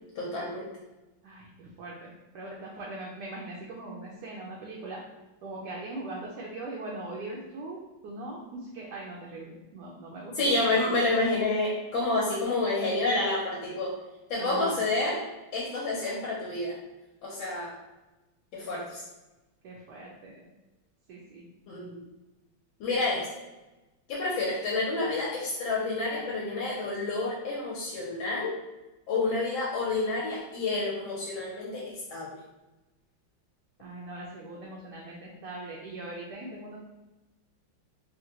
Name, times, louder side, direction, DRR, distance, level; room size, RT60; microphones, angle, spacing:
voice 1, 0.2-0.7 10.3-13.9 14.3-15.2 15.5-16.8 17.2-17.7 18.5-19.0 21.7-22.0 22.8-23.2 24.1-28.5 29.1-32.3, left 2 dB, 75° left, -5 dB, 1.4 m, -29 dB
voice 2, 1.2-5.0 5.4-7.8 8.0-10.8 14.4-14.8 19.6-20.5 21.1-21.4 33.8-36.8, right 2 dB, 75° right, -3 dB, 1.0 m, -41 dB
3.8 x 2.1 x 2.8 m, 1.1 s
omnidirectional pair, 2.2 m